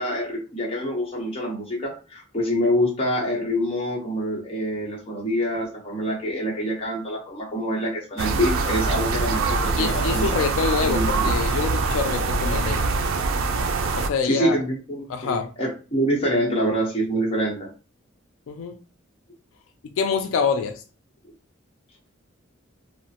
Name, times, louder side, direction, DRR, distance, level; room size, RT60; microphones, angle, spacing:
voice 1, 0.0-10.5 10.8-11.4 14.2-17.7, equal, 30° left, 0.9 m, -26 dB
sound 1, 8.2-14.1, right 3 dB, 85° right, 0.4 m, -24 dB
voice 2, 9.8-12.9 13.9-14.6 15.1-15.5 18.5-18.7 19.8-20.8, left 5 dB, 85° left, 0.3 m, -26 dB
3.0 x 2.1 x 2.8 m
head